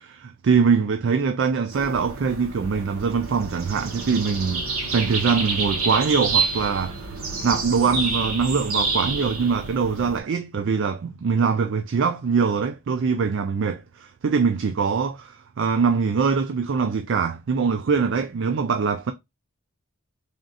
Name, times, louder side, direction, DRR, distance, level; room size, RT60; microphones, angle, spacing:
voice 1, 0.0-7.0 7.4-19.1, right 5 dB, 55° right, 0.3 m, -23 dB
sound 1, 1.7-10.2, right 3 dB, 70° right, 1.1 m, -28 dB
3.6 x 2.5 x 3.9 m
head